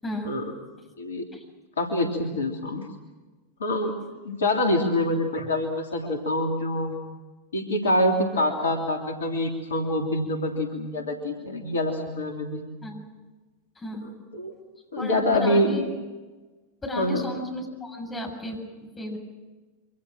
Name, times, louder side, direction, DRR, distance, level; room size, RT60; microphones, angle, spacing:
voice 1, 0.0-0.3 1.3-1.4 12.8-13.0 13.8-14.1 15.0-16.0 16.8-19.2, left 1 dB, 15° left, 2 dB, 7.2 m, -33 dB
voice 2, 1.8-2.9 3.6-3.9 4.2-6.9 7.5-12.6 14.3-14.5 14.9-15.8 17.0-17.3, left 1 dB, 70° left, 3 dB, 3.1 m, -25 dB
27.0 x 25.5 x 6.2 m, 1.3 s
figure-of-eight pair, 90°, 0 cm